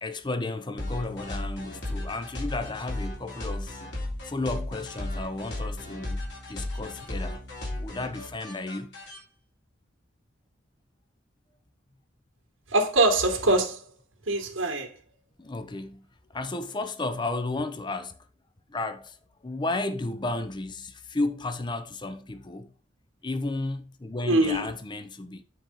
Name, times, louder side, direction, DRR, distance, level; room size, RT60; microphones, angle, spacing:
voice 1, 0.0-3.8 4.2-7.4 7.7-9.0 15.4-16.1 16.3-18.2 18.7-19.2 19.4-22.7 23.2-25.4, left 2 dB, 25° left, 0.6 m, -33 dB
sound 1, 0.8-9.2, left 1 dB, 60° left, 3.7 m, -35 dB
voice 2, 12.7-13.8 14.3-14.9 24.3-24.7, right 2 dB, 90° right, 2.0 m, -23 dB
9.4 x 4.5 x 3.9 m
head